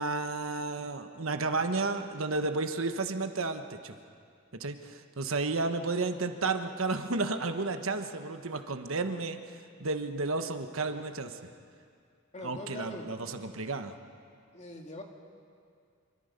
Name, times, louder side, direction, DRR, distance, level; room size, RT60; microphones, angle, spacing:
voice 1, 0.0-4.0 4.6-9.5 9.8-11.4 12.4-13.9, right 3 dB, 75° right, 7 dB, 1.3 m, -32 dB
voice 2, 12.3-13.1 14.5-15.0, left 1 dB, 35° left, 2 dB, 2.3 m, -42 dB
27.5 x 24.5 x 5.3 m, 2.3 s
head